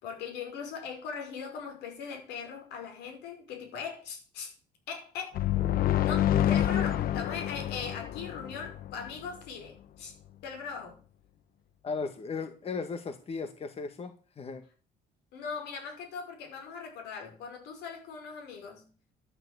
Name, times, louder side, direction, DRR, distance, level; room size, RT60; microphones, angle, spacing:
voice 1, 0.0-4.5 4.9-5.4 6.0-10.1 10.4-11.0 15.3-18.9, left 6 dB, 85° left, 5.4 m, -40 dB
sound 1, 5.3-9.1, left 11 dB, 60° left, 0.8 m, -28 dB
voice 2, 11.8-14.6, left 4 dB, 35° left, 1.5 m, -36 dB
12.0 x 7.0 x 8.0 m
cardioid pair, 110°, 17 cm